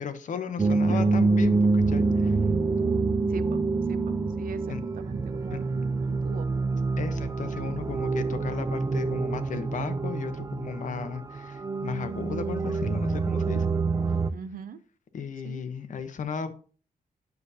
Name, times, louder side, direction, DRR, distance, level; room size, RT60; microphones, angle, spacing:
voice 1, 0.0-2.4 4.7-4.8 5.5-5.6 7.0-13.7 15.1-16.5, left 6 dB, 60° left, 10 dB, 0.8 m, -35 dB
sound 1, 0.6-14.3, right 3 dB, 20° right, 0.3 m, -26 dB
voice 2, 3.3-3.6 3.9-6.5 14.3-14.8 15.4-15.6, right 6 dB, 70° right, 13 dB, 0.6 m, -41 dB
9.4 x 6.8 x 2.7 m, 0.41 s
wide cardioid pair, 155°, 15 cm